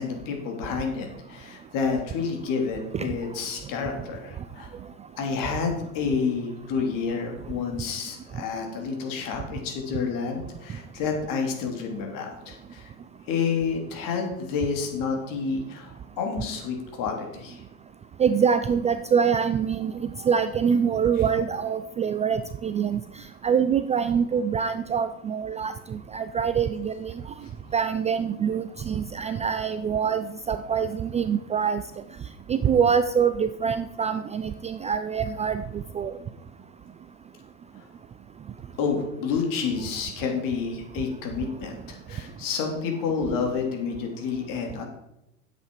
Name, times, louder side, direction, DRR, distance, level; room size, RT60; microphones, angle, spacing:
voice 1, 0.0-4.7 5.2-12.9 13.3-17.6 37.8-37.9 38.8-44.8, left 5 dB, 50° left, 2 dB, 3.5 m, -29 dB
voice 2, 18.2-23.0 23.4-27.1 27.7-31.8 32.5-36.1, right 7 dB, 15° right, 11 dB, 0.4 m, -25 dB
10.5 x 7.9 x 4.8 m, 0.85 s
hypercardioid pair, 80°, 42 cm